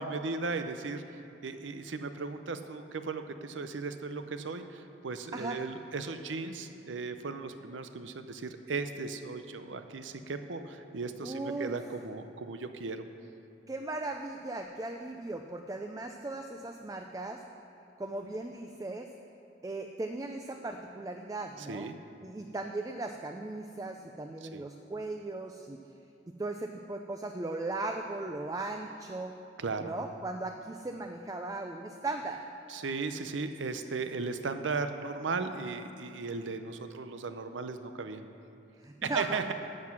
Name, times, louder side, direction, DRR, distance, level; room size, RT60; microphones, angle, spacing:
voice 1, 0.0-13.0 21.6-22.0 24.4-24.6 29.6-29.9 32.7-38.2 39.0-39.5, right 4 dB, 90° right, 9 dB, 0.7 m, -36 dB
voice 2, 11.2-11.7 13.7-17.4 18.0-19.1 19.6-21.9 22.2-25.8 26.3-29.3 29.8-32.4 38.8-39.5, right 2 dB, 20° right, 4 dB, 0.4 m, -37 dB
12.0 x 7.7 x 6.0 m, 2.7 s
head